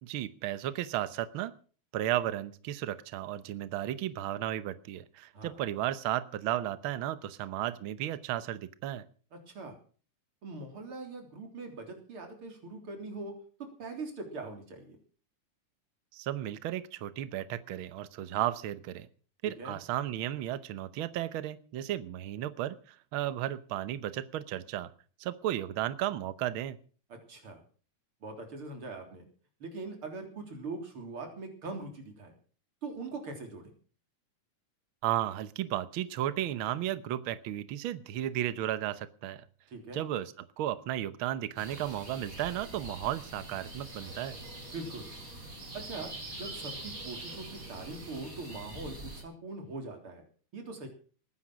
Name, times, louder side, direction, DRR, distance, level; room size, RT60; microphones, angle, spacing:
voice 1, 0.0-1.5 1.9-9.0 16.1-19.1 19.4-24.9 25.2-26.8 35.0-39.4 39.9-44.4, right 12 dB, 85° right, 14 dB, 1.1 m, -34 dB
voice 2, 9.3-9.8 10.4-13.3 13.6-15.0 19.4-19.8 27.3-27.6 28.2-29.2 29.6-32.3 32.8-33.7 39.7-40.0 44.6-45.1 45.7-50.2 50.5-50.9, right 3 dB, 45° right, 4 dB, 4.2 m, -42 dB
sound 1, 41.6-49.2, right 1 dB, 25° right, 4.4 m, -44 dB
20.0 x 10.0 x 6.2 m, 0.42 s
omnidirectional pair, 3.6 m